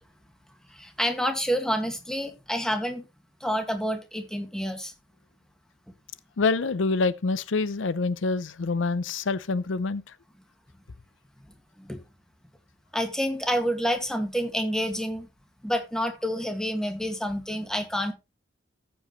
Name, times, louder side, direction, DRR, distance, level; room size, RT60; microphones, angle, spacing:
voice 1, 0.7-3.1 3.4-4.9 11.8-12.0 12.9-15.3 15.6-18.1, equal, 5° left, 2.0 m, -28 dB
voice 2, 6.4-10.0, left 3 dB, 85° left, 0.6 m, -26 dB
14.0 x 7.9 x 3.1 m
head